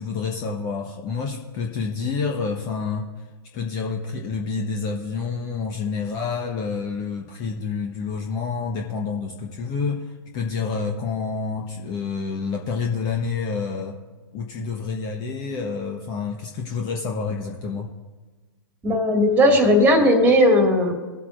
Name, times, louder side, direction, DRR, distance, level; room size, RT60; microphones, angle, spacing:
voice 1, 0.0-3.1 3.5-14.0 14.3-17.9, left 5 dB, 30° left, 1 dB, 1.1 m, -28 dB
voice 2, 18.8-20.9, equal, 10° right, 2 dB, 2.1 m, -17 dB
20.0 x 8.1 x 2.6 m, 1.3 s
figure-of-eight pair, 115°, 13 cm